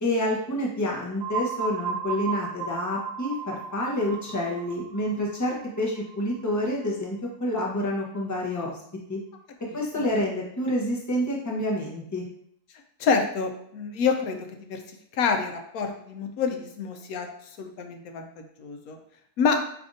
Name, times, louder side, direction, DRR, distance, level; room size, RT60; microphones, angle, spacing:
voice 1, 0.0-8.8 9.1-9.2 9.7-12.2, left 1 dB, 20° left, -2 dB, 0.4 m, -28 dB
sound 1, 1.2-6.9, right 6 dB, 85° right, 1.2 m, -34 dB
voice 2, 13.0-14.8 15.1-17.3 17.6-19.0 19.4-19.6, left 5 dB, 75° left, 4 dB, 1.0 m, -27 dB
4.9 x 3.3 x 2.6 m, 0.69 s
omnidirectional pair, 1.6 m